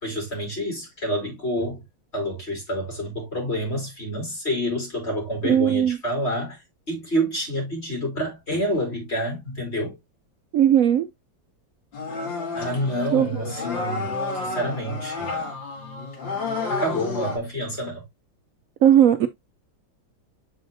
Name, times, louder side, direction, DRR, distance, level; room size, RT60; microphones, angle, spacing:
voice 1, 0.0-1.8 2.1-6.6 6.9-10.0 12.5-14.1 14.4-15.3 16.7-18.0, equal, 30° left, 3.6 m, -28 dB
voice 2, 5.4-6.0 10.5-11.1 13.1-13.3 18.8-19.3, right 10 dB, 90° right, 0.7 m, -17 dB
sound 1, 11.9-17.4, left 3 dB, 75° left, 2.7 m, -30 dB
7.9 x 4.9 x 2.5 m
omnidirectional pair, 2.1 m